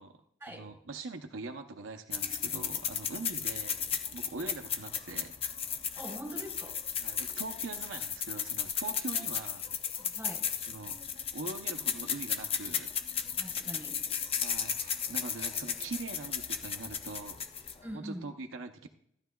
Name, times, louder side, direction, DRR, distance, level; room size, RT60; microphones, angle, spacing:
voice 1, 0.0-5.3 7.0-9.8 10.7-11.0 11.3-12.9 14.4-17.4 17.9-18.9, right 3 dB, 75° right, 6 dB, 0.7 m, -43 dB
sound 1, 2.1-17.9, left 7 dB, 30° left, 0.6 m, -35 dB
voice 2, 5.9-6.8 9.1-9.2 10.0-10.4 13.4-14.0 17.8-18.2, equal, 10° right, -1 dB, 3.6 m, -43 dB
15.0 x 10.5 x 2.3 m, 0.72 s
head